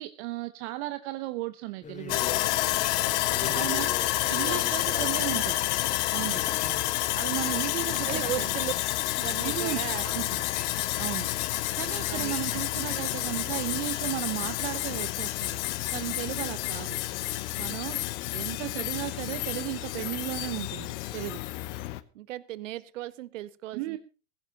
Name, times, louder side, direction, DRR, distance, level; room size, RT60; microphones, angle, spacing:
voice 1, 0.0-2.2 3.5-5.6 6.1-6.4 7.2-8.5 9.4-10.4 11.0-11.3 11.7-15.6 15.9-17.0 17.6-18.0 18.3-21.4 23.7-24.0, right 18 dB, 55° right, 11 dB, 1.0 m, -35 dB
sound 1, 1.8-13.3, left 5 dB, 20° left, 1.8 m, -45 dB
Sawing, 2.1-22.0, left 17 dB, 60° left, 1.1 m, -29 dB
voice 2, 3.3-3.9 6.6-6.9 8.0-8.7 9.1-10.1 12.1-12.4 12.9-13.1 22.1-24.0, right 15 dB, 70° right, 18 dB, 1.1 m, -37 dB
16.0 x 15.5 x 2.9 m, 0.34 s
hypercardioid pair, 100°, 39 cm